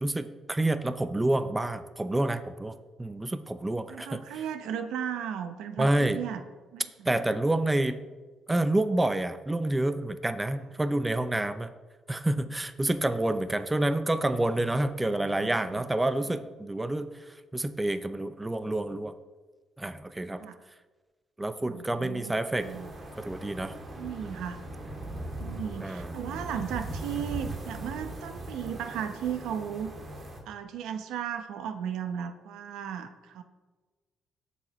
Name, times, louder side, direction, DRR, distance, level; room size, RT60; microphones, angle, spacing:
voice 1, 0.0-2.7 3.0-4.2 5.8-6.2 7.1-8.0 8.5-11.7 12.1-17.1 17.5-19.1 19.8-20.4 21.4-22.7 23.2-23.7 24.2-24.3 25.8-26.2, right 1 dB, 15° right, 10 dB, 0.6 m, -28 dB
voice 2, 3.9-6.4 6.7-7.1 15.3-15.8 20.4-20.6 21.6-22.3 22.6-22.9 23.9-24.6 25.4-29.9 30.5-33.4, right 8 dB, 90° right, 8 dB, 0.8 m, -35 dB
sound 1, 22.6-30.4, right 1 dB, 40° right, 2.3 m, -39 dB
17.0 x 7.0 x 3.2 m, 1.3 s
cardioid pair, 90°, 0 cm